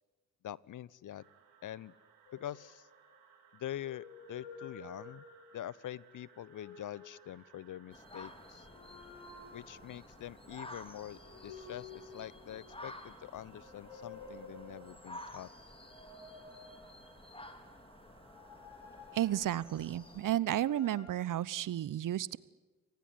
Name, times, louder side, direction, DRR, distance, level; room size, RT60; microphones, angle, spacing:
voice 1, 0.4-1.2 1.6-1.9 2.3-2.9 3.5-5.2 5.5-8.7 9.5-15.5, left 12 dB, 50° left, 23 dB, 0.9 m, -45 dB
sound 1, 1.1-19.9, right 7 dB, 75° right, 4.8 m, -64 dB
sound 2, 2.3-3.2 3.7-5.7 6.3-7.3 8.6-10.0 11.2-12.9 13.4-15.1 15.7-17.3 18.2-20.0 20.5-21.1, left 4 dB, 70° left, 7.8 m, -53 dB
sound 3, 7.9-20.4, left 1 dB, 15° left, 4.8 m, -52 dB
voice 2, 19.1-22.4, right 12 dB, 55° right, 21 dB, 1.1 m, -32 dB
29.5 x 18.5 x 9.7 m, 1.2 s
hypercardioid pair, 45°, 39 cm